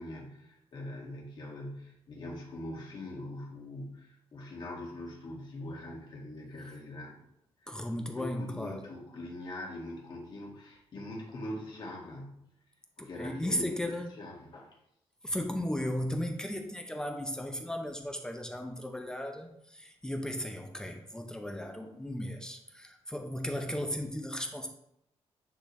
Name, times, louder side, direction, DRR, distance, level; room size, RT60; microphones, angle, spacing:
voice 1, 0.0-7.2 7.6-7.9 8.1-12.5 13.0-13.7 14.1-14.7, left 1 dB, 50° left, -3 dB, 2.1 m, -42 dB
voice 2, 7.7-8.9 13.0-14.1 15.2-24.7, left 1 dB, 5° left, 3 dB, 0.6 m, -36 dB
10.0 x 3.9 x 3.2 m, 0.77 s
cardioid pair, 145°, 10 cm